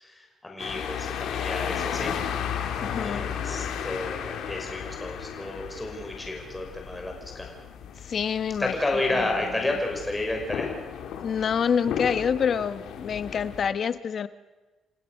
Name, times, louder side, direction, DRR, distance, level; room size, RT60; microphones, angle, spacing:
voice 1, 0.1-2.1 3.0-7.6 8.6-10.7, left 2 dB, 15° left, 1 dB, 5.6 m, -31 dB
sound 1, 0.6-13.7, left 8 dB, 80° left, 2.5 m, -34 dB
voice 2, 2.8-3.3 8.0-8.7 9.1-9.3 11.2-14.3, left 7 dB, 55° left, 12 dB, 1.2 m, -27 dB
29.5 x 16.0 x 6.5 m, 1.2 s
cardioid pair, 90°, 0 cm